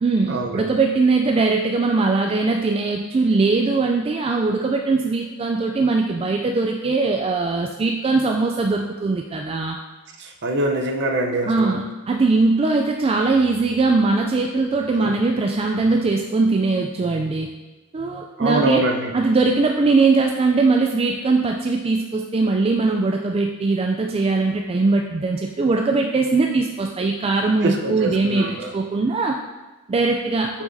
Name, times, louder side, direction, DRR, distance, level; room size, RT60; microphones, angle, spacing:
voice 1, 0.0-9.8 11.5-17.5 17.9-18.8 19.1-29.4 29.9-30.5, right 3 dB, 25° right, 2 dB, 0.3 m, -20 dB
voice 2, 10.2-11.8 15.0-15.2 18.4-19.1 27.6-28.7, right 1 dB, 55° right, 3 dB, 0.8 m, -24 dB
7.5 x 5.9 x 2.7 m, 1.1 s
head